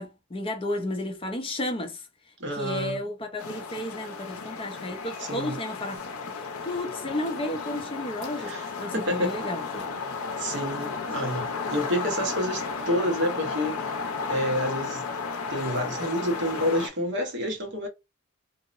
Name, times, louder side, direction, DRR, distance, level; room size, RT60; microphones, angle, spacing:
voice 1, 0.0-2.1 2.5-6.0 6.3-9.8, left 1 dB, 25° left, 0.4 m, -33 dB
voice 2, 2.4-3.0 5.2-5.6 8.4-9.4 10.4-15.0 15.5-17.9, equal, 55° right, 0.8 m, -29 dB
sound 1, 3.4-16.9, left 5 dB, 75° left, 0.5 m, -34 dB
2.7 x 2.0 x 2.4 m
head